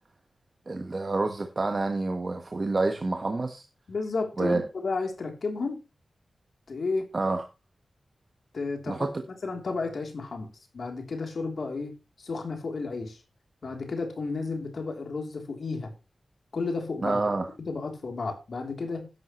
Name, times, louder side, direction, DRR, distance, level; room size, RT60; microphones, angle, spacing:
voice 1, 0.7-3.6 4.4-4.6 7.1-7.4 8.9-9.2 17.0-17.5, right 3 dB, 35° right, 1.3 m, -28 dB
voice 2, 3.9-5.8 6.7-7.1 8.5-9.1 9.4-10.5 10.7-13.2 13.6-15.9 16.5-17.2 17.6-19.1, left 3 dB, 65° left, 3.1 m, -32 dB
12.5 x 11.0 x 3.1 m
wide cardioid pair, 110°, 0 cm